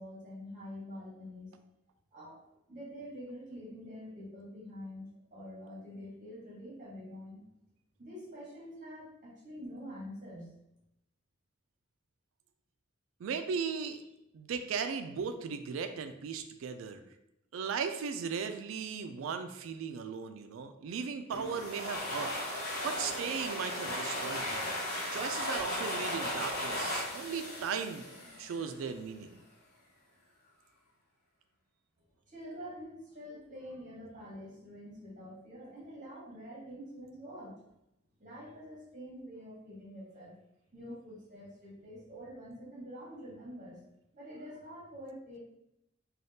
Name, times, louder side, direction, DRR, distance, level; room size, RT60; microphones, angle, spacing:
voice 1, 0.0-1.5 2.1-2.4 2.7-7.4 8.0-10.5 32.3-37.6 38.2-40.3 40.7-43.8 44.1-45.4, equal, 40° right, -5 dB, 1.1 m, -46 dB
voice 2, 13.2-14.0 14.3-17.0 17.5-22.3 22.8-24.7 25.1-28.1 28.4-29.4, right 6 dB, 80° right, 8 dB, 0.3 m, -37 dB
sound 1, 21.3-28.8, left 1 dB, 55° left, 1.0 m, -36 dB
3.4 x 2.3 x 2.7 m, 0.84 s
head